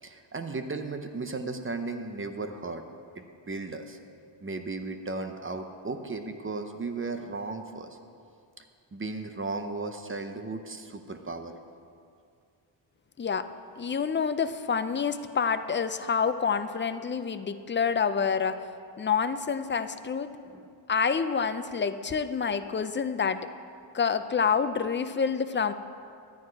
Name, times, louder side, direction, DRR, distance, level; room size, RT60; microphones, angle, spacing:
voice 1, 0.0-2.8 3.2-4.0 4.4-7.9 8.9-11.5 20.4-20.8, right 3 dB, 25° right, 7 dB, 0.7 m, -35 dB
voice 2, 13.8-18.6 19.0-20.3 20.9-23.4 23.9-25.7, left 6 dB, 25° left, 10 dB, 0.4 m, -27 dB
12.0 x 9.5 x 4.6 m, 2.4 s
wide cardioid pair, 90°, 48 cm